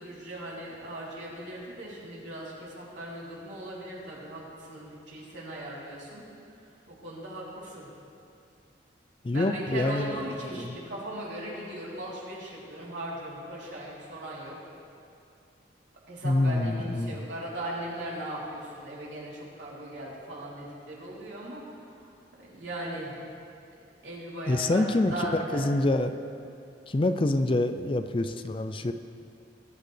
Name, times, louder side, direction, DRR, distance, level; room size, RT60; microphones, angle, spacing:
voice 1, 0.0-6.2 6.9-7.9 9.3-14.6 16.1-21.6 22.4-23.2 24.0-25.6, right 1 dB, 80° right, -6 dB, 3.5 m, -38 dB
voice 2, 9.2-10.2 10.5-10.7 16.2-17.2 24.5-26.1 26.9-28.9, left 2 dB, 30° left, 9 dB, 0.4 m, -26 dB
20.5 x 9.7 x 3.3 m, 2.5 s
head